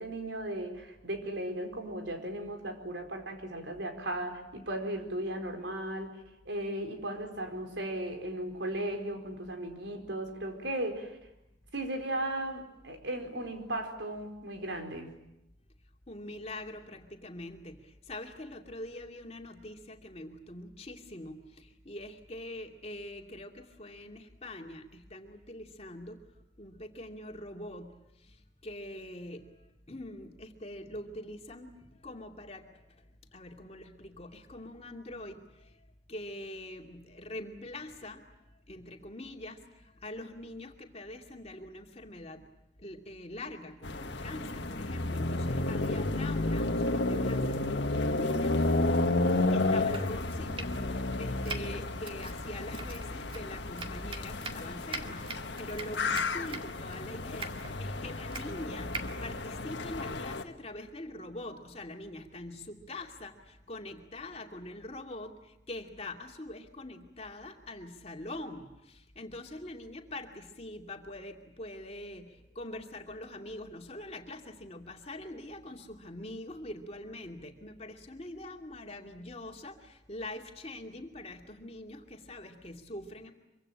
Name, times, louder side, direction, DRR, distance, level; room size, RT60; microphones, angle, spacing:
voice 1, 0.0-6.2 6.4-11.2 11.7-15.1, right 1 dB, 75° right, 5 dB, 4.6 m, -36 dB
voice 2, 16.1-26.2 26.6-27.9 28.6-29.5 29.9-32.7 33.3-35.7 36.1-38.2 38.7-42.5 42.8-48.7 49.5-58.9 59.2-83.3, left 1 dB, 35° left, 2 dB, 2.5 m, -44 dB
sound 1, 43.8-60.4, left 2 dB, 75° left, 1.6 m, -32 dB
Domestic sounds home sounds, 49.8-60.4, right 3 dB, 30° right, 2.0 m, -45 dB
25.5 x 24.5 x 8.8 m, 0.90 s
head